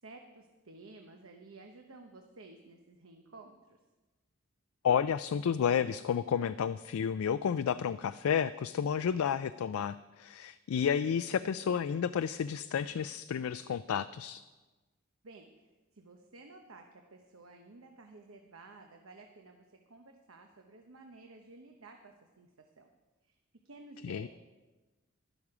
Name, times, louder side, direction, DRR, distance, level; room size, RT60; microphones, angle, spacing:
voice 1, 0.0-3.8 15.2-15.7 15.9-22.9 23.2-23.3 23.6-24.3, right 3 dB, 75° right, 4 dB, 0.9 m, -53 dB
voice 2, 4.8-14.4 24.0-24.3, left 7 dB, 90° left, 13 dB, 0.3 m, -31 dB
12.0 x 12.0 x 4.9 m, 1.2 s
head